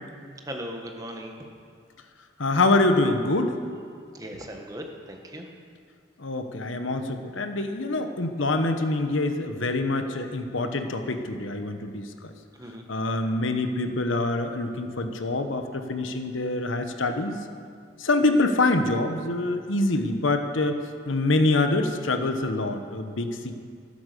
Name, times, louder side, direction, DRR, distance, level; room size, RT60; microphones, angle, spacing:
voice 1, 0.4-1.4 4.1-5.5 12.5-12.8, equal, 20° right, 2 dB, 1.4 m, -38 dB
voice 2, 2.4-3.5 6.2-12.3 12.9-17.4 18.0-20.8 21.1-23.6, left 2 dB, 85° left, 7 dB, 1.1 m, -25 dB
13.5 x 11.5 x 6.8 m, 2.2 s
head